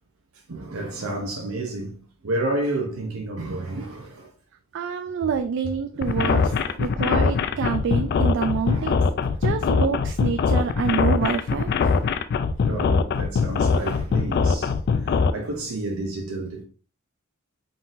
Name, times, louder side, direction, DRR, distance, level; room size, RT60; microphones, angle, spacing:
voice 1, 0.5-2.0 2.2-4.3 5.9-6.8 8.7-9.0 11.8-12.0 12.6-14.7 15.0-16.6, right 2 dB, 85° right, 0.7 m, -30 dB
voice 2, 4.7-9.1 9.4-11.7, right 6 dB, 60° right, 0.3 m, -27 dB
sound 1, 6.0-15.3, left 5 dB, 50° left, 0.3 m, -22 dB
3.9 x 3.9 x 2.5 m
head